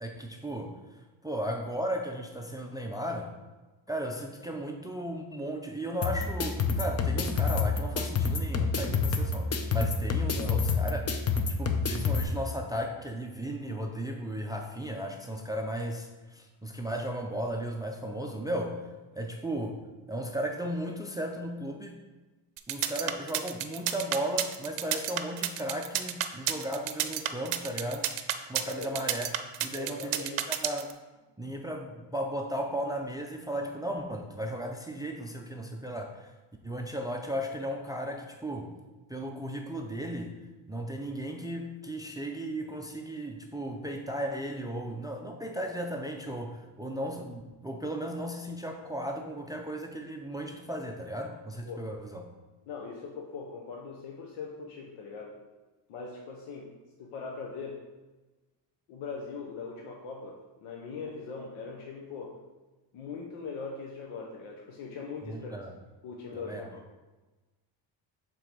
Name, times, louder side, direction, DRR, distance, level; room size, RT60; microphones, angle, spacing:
voice 1, 0.0-3.3 3.9-11.0 11.6-18.9 19.1-19.8 20.1-22.0 22.7-28.1 28.5-29.3 29.6-30.9 31.4-36.3 36.6-38.8 39.1-40.3 40.7-52.3 65.2-65.7 66.3-66.7, right 1 dB, 10° right, 3 dB, 0.4 m, -35 dB
sound 1, 6.0-12.2, left 5 dB, 30° left, 0.6 m, -28 dB
sound 2, 22.6-30.9, right 12 dB, 70° right, 0.7 m, -30 dB
voice 2, 29.7-30.5 44.7-44.9 51.6-51.9 52.7-55.4 55.9-56.7 57.0-57.8 58.9-62.4 62.9-65.5 66.0-66.8, left 4 dB, 80° left, -1 dB, 1.0 m, -41 dB
7.0 x 3.8 x 4.5 m, 1.2 s
cardioid pair, 105°, 50 cm